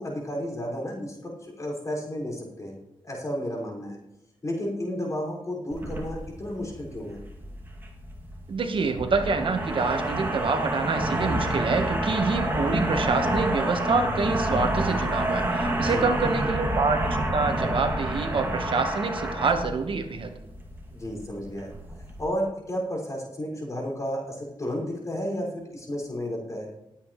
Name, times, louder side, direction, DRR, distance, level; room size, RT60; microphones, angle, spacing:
voice 1, 0.0-2.8 3.0-4.0 4.4-7.2 15.8-16.3 20.9-21.7 22.2-26.7, equal, 35° left, -2 dB, 5.4 m, -32 dB
sound 1, 5.7-22.3, right 1 dB, 20° right, 2.3 m, -29 dB
voice 2, 8.5-20.3, right 4 dB, 60° right, 6 dB, 1.3 m, -26 dB
21.0 x 8.6 x 3.1 m, 0.90 s
cardioid pair, 90°, 10 cm